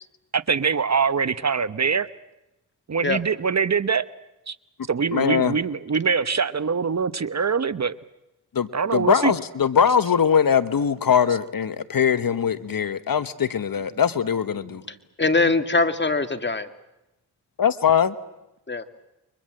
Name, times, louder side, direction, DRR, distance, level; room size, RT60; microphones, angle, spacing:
voice 1, 0.3-2.1 2.9-4.0 4.5-4.6 4.9-8.0 8.7-9.4 9.8-10.0 11.3-11.4 13.9-14.0 14.7-14.8, right 5 dB, 40° right, 15 dB, 1.0 m, -23 dB
voice 2, 5.1-5.5 8.5-14.8 17.6-18.1, left 7 dB, 55° left, 14 dB, 1.1 m, -21 dB
voice 3, 14.9-16.7 18.7-18.8, left 3 dB, 25° left, 9 dB, 2.0 m, -22 dB
29.5 x 23.5 x 7.7 m, 0.91 s
cardioid pair, 65°, 41 cm